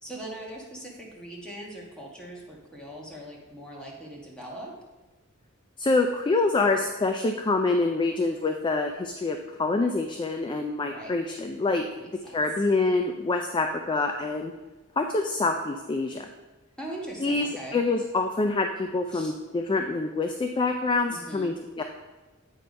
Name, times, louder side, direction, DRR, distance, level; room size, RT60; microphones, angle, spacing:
voice 1, 0.0-4.7 10.8-11.2 12.0-12.4 16.8-17.8 19.1-19.4 21.1-21.5, right 1 dB, 5° left, -3 dB, 1.4 m, -41 dB
voice 2, 5.8-11.8 12.3-14.5 15.0-16.3 17.2-21.8, left 3 dB, 25° left, 5 dB, 0.3 m, -26 dB
8.2 x 3.3 x 5.2 m, 1.2 s
head